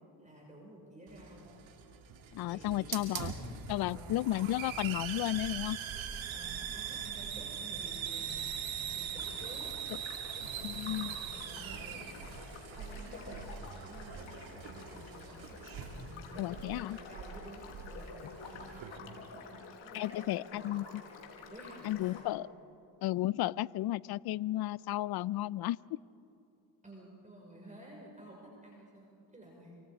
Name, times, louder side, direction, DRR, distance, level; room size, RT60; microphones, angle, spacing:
voice 1, 0.2-1.5 2.5-3.3 3.8-4.1 6.3-8.5 8.8-9.7 9.9-10.2 10.8-12.2 12.7-13.4 13.8-18.2 18.4-20.8 21.5-22.2 26.8-29.7, right 1 dB, 15° right, -2 dB, 5.8 m, -52 dB
Hiss, 1.1-19.0, right 8 dB, 75° right, 2.8 m, -42 dB
voice 2, 2.3-3.3 3.7-5.8 10.6-11.1 16.4-17.0 19.9-20.8 21.8-22.5 23.0-25.8, left 15 dB, 55° left, 22 dB, 0.5 m, -33 dB
sound 1, 9.2-22.2, left 5 dB, 75° left, 4.7 m, -50 dB
29.0 x 25.0 x 5.0 m, 2.8 s
supercardioid pair, 60°, 47 cm